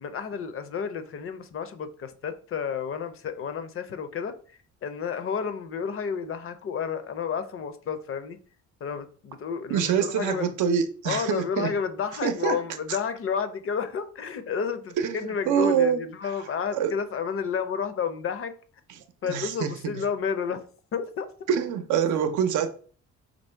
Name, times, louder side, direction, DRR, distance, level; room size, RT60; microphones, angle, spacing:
voice 1, 0.0-4.3 4.8-8.4 8.8-10.5 11.0-18.5 19.2-20.7 20.9-21.3, left 6 dB, 45° left, 0.5 m, -31 dB
voice 2, 9.7-11.7 12.2-12.6 15.0-16.0 16.7-16.9 19.2-20.0 21.5-22.7, right 8 dB, 80° right, 0.6 m, -25 dB
3.0 x 2.7 x 4.4 m
cardioid pair, 90°, 30 cm